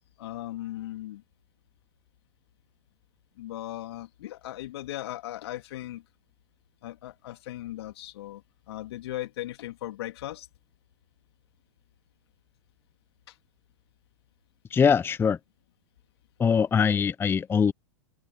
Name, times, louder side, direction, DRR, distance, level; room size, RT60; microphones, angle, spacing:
voice 1, 0.2-1.2 3.4-6.0 6.8-10.5 13.3-13.4, left 14 dB, 60° left, 2.9 m, -38 dB
voice 2, 14.7-15.4 16.4-17.7, left 6 dB, 15° left, 0.7 m, -22 dB
figure-of-eight pair, 100°, 15 cm